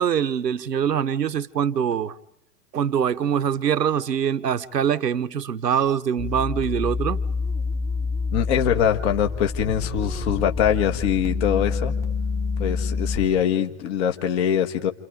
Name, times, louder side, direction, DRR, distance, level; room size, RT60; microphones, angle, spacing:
voice 1, 0.0-2.2 2.7-7.2, right 8 dB, 75° right, 1.0 m, -23 dB
sound 1, 6.2-13.3, left 4 dB, 5° left, 1.3 m, -27 dB
voice 2, 8.3-11.9 12.6-14.9, left 9 dB, 40° left, 1.9 m, -23 dB
29.0 x 28.5 x 5.1 m
figure-of-eight pair, 110°, 49 cm